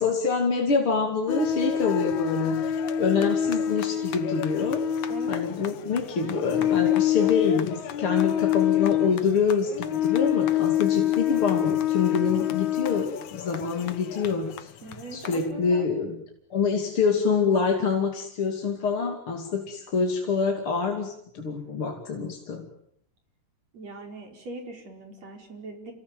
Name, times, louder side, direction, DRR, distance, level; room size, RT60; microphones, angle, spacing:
voice 1, 0.0-4.8 5.3-14.7 15.1-16.2 16.5-22.7, left 5 dB, 35° left, 2 dB, 3.0 m, -26 dB
sound 1, 1.3-15.4, left 10 dB, 60° left, 2.2 m, -26 dB
voice 2, 5.1-5.5 14.8-15.8 23.7-25.9, right 2 dB, 40° right, 3 dB, 6.4 m, -40 dB
29.5 x 19.0 x 9.3 m, 0.74 s
omnidirectional pair, 4.6 m